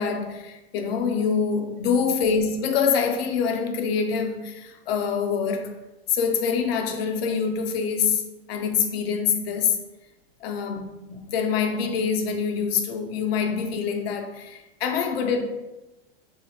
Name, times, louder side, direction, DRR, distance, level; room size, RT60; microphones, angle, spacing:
voice 1, 0.0-5.8 6.1-8.2 8.5-9.8 10.4-15.4, left 6 dB, 70° left, 0.6 m, -25 dB
3.2 x 2.5 x 4.0 m
supercardioid pair, 155°, 31 cm